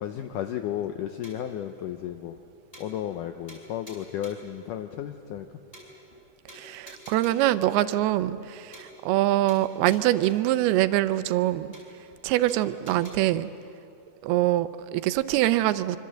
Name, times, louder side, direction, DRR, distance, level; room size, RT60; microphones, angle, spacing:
voice 1, 0.0-2.4 2.8-5.5, left 10 dB, 85° left, 7 dB, 1.8 m, -33 dB
sound 1, 1.2-1.6 2.0-2.1 2.4-2.5 2.7-3.2 3.5-4.5 5.0-5.1 5.4-5.5 5.7-6.2 6.5-7.6 8.0-8.1 8.4-8.5 8.7-9.2 9.5-10.6 11.0-11.1 11.4-11.5 11.7-12.2 12.5-13.1, equal, 10° left, 5.4 m, -49 dB
voice 2, 6.5-11.7 12.2-13.5 14.2-16.0, right 15 dB, 80° right, 13 dB, 2.6 m, -24 dB
26.0 x 25.0 x 7.6 m, 2.6 s
omnidirectional pair, 4.6 m